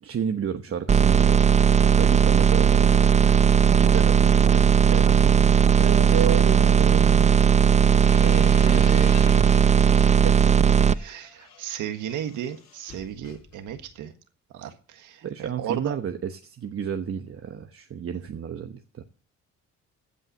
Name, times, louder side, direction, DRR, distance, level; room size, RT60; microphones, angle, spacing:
voice 1, 0.0-1.5 1.8-3.5 3.8-5.1 15.2-19.0, right 7 dB, 50° right, 1.1 m, -32 dB
sound 1, 0.9-10.9, right 7 dB, 25° right, 0.5 m, -17 dB
voice 2, 4.9-7.4 8.2-9.6 10.2-10.3 10.9-14.1 14.5-15.9, right 10 dB, 85° right, 1.6 m, -32 dB
sound 2, 8.0-10.3 10.7-14.1, left 6 dB, 60° left, 6.7 m, -46 dB
15.5 x 5.6 x 7.6 m
cardioid pair, 90°, 30 cm